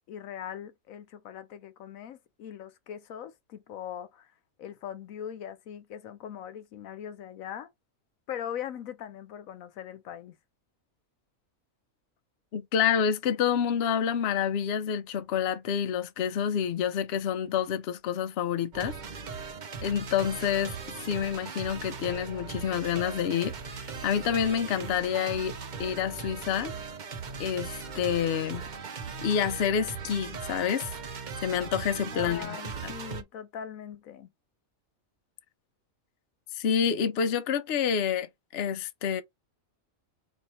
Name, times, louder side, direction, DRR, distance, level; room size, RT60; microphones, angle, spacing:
voice 1, 0.1-4.3 4.6-7.7 8.3-10.3 32.1-34.3, left 9 dB, 80° left, 1.1 m, -40 dB
voice 2, 12.5-18.9 19.8-20.8 21.0-26.7 27.4-28.6 29.2-30.9 31.4-32.6 32.8-32.9 36.5-39.2, left 8 dB, 60° left, 0.8 m, -28 dB
sound 1, 18.7-33.2, right 5 dB, 50° right, 0.6 m, -39 dB
4.2 x 2.5 x 4.2 m
omnidirectional pair, 1.4 m